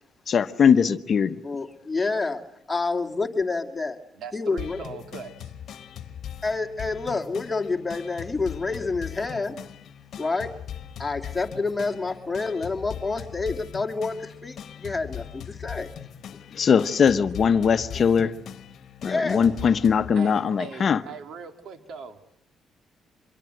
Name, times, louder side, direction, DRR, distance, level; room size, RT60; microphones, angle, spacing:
voice 1, 0.3-1.4 16.5-18.3 19.0-21.0, left 6 dB, 50° left, 1.0 m, -20 dB
voice 2, 1.4-2.4 2.7-4.0 4.3-4.8 6.4-9.6 10.2-10.5 11.0-15.9 19.1-19.4, left 3 dB, 20° left, 2.5 m, -28 dB
voice 3, 4.1-5.5 20.1-22.2, right 5 dB, 70° right, 2.4 m, -40 dB
sound 1, 4.6-20.1, left 9 dB, 70° left, 1.3 m, -40 dB
25.5 x 22.5 x 7.8 m
cardioid pair, 90°, 0 cm